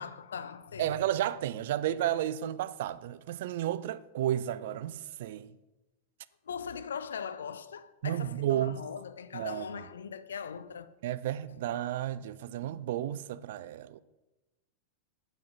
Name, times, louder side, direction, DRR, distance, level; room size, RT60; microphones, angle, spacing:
voice 1, 0.0-1.0 6.5-10.9, left 6 dB, 65° left, 0.4 m, -40 dB
voice 2, 0.8-5.5 8.0-8.8 9.3-9.7 11.0-14.0, right 12 dB, 55° right, 0.3 m, -32 dB
8.4 x 7.4 x 3.9 m
figure-of-eight pair, 90°, 0 cm